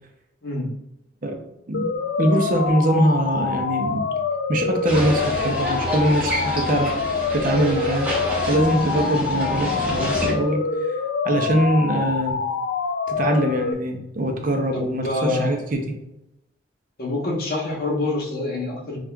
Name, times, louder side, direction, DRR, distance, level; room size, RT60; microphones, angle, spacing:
sound 1, 1.7-13.7, left 5 dB, 85° left, 0.3 m, -26 dB
voice 1, 2.2-4.1 4.5-6.9 7.3-8.1 8.4-11.0 11.2-12.4 13.1-15.8, right 1 dB, 50° right, 3 dB, 0.6 m, -22 dB
sound 2, 4.8-10.3, equal, 10° right, 0.9 m, -28 dB
voice 2, 14.7-15.5 17.0-19.0, left 2 dB, 55° left, -3 dB, 1.0 m, -26 dB
5.9 x 2.4 x 2.2 m, 0.88 s
head